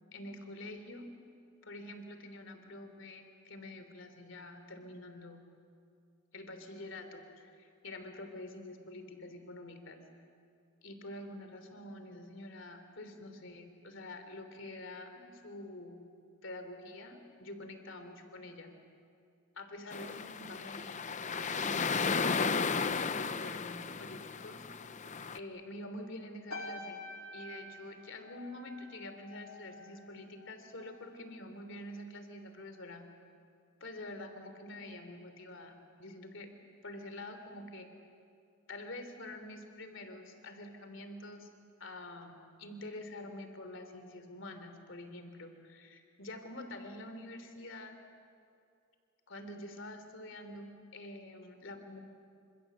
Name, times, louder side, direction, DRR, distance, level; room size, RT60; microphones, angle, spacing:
voice 1, 0.1-1.1 1.6-5.4 6.3-10.0 10.8-16.0 16.4-18.7 19.5-23.1 23.4-24.7 25.3-27.0 27.3-33.0 33.8-36.5 36.8-37.9 38.7-41.5 41.8-48.0 49.3-52.0, left 1 dB, 60° left, 7 dB, 3.3 m, -47 dB
sound 1, 19.9-25.4, left 5 dB, 35° left, 0.7 m, -34 dB
sound 2, 26.5-31.1 31.4-31.8, left 1 dB, 85° left, 3.1 m, -48 dB
27.5 x 26.5 x 7.8 m, 2.5 s
head